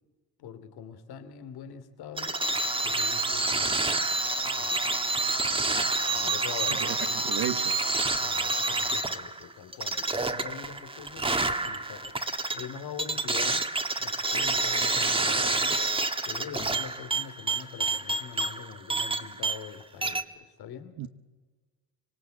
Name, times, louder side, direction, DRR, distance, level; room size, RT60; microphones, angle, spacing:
voice 1, 0.4-2.4 2.8-3.9 4.3-4.8 6.1-7.4 8.2-13.6 14.0-15.8 16.2-20.9, left 8 dB, 75° left, 10 dB, 2.9 m, -43 dB
sound 1, 2.2-19.8 20.0-20.2, right 3 dB, 15° right, 1.5 m, -28 dB
voice 2, 6.8-7.7 21.0-21.1, right 11 dB, 70° right, 8 dB, 1.2 m, -33 dB
25.5 x 24.0 x 7.9 m, 1.3 s
cardioid pair, 105°, 38 cm